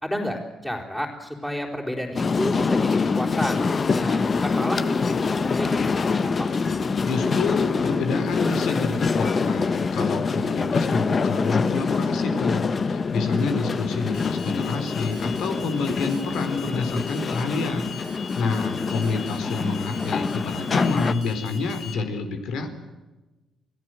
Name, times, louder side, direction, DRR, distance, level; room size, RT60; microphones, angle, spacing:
voice 1, 0.0-3.6 3.9-6.5 18.5-18.9, equal, 10° left, -4 dB, 4.3 m, -31 dB
sound 1, 2.2-21.1, left 4 dB, 35° left, 1.1 m, -25 dB
voice 2, 7.1-22.7, left 4 dB, 85° left, 7 dB, 4.1 m, -28 dB
Alarm, 14.1-21.9, left 7 dB, 60° left, 3.3 m, -41 dB
28.5 x 17.5 x 7.9 m, 1.1 s
cardioid pair, 125°, 0 cm